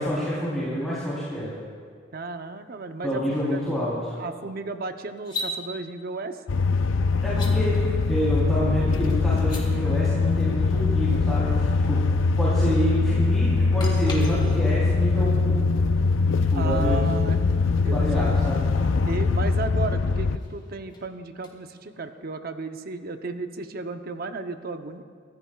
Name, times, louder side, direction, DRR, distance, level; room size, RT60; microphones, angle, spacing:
voice 1, 0.0-1.6 3.0-4.1 7.2-7.8 8.1-12.0 12.4-15.6 16.5-17.0 17.9-18.6, equal, ahead, -10 dB, 3.4 m, -28 dB
voice 2, 2.1-3.2 3.5-3.6 4.2-6.4 16.5-17.4 17.8-18.3 19.1-25.0, right 3 dB, 50° right, 8 dB, 0.7 m, -34 dB
sound 1, 5.2-5.5 7.3-7.5 9.3-9.6 13.8-14.8 18.0-18.1 20.0-22.2, left 2 dB, 25° left, 2.0 m, -37 dB
sound 2, 6.5-20.4, left 4 dB, 90° left, 0.5 m, -22 dB
25.5 x 14.5 x 2.4 m, 2.2 s
head